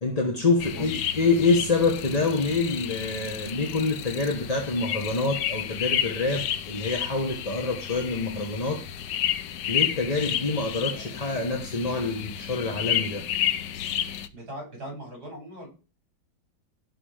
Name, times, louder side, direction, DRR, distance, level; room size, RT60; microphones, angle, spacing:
voice 1, 0.0-8.8 9.7-13.3, left 3 dB, 25° left, 1.2 m, -26 dB
sound 1, 0.6-14.3, left 10 dB, 70° left, 1.3 m, -31 dB
voice 2, 14.3-15.7, right 1 dB, 50° right, 7.6 m, -39 dB
16.0 x 6.2 x 5.1 m
omnidirectional pair, 2.1 m